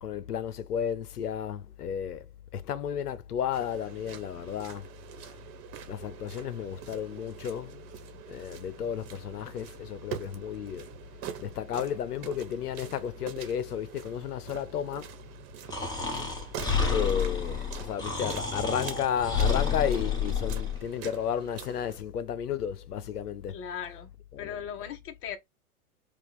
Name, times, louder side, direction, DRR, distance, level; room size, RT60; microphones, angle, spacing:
voice 1, 0.0-2.3 2.5-4.9 5.9-7.9 8.3-10.9 11.4-15.1 16.9-23.6 24.3-24.6, left 8 dB, 90° left, 0.7 m, -33 dB
sound 1, 3.5-22.0, right 9 dB, 40° right, 1.2 m, -45 dB
Breathing, 15.7-20.8, left 5 dB, 10° left, 1.3 m, -29 dB
voice 2, 23.5-24.1 24.4-25.4, left 8 dB, 30° left, 0.9 m, -38 dB
4.8 x 2.4 x 3.5 m
hypercardioid pair, 115°, 45 cm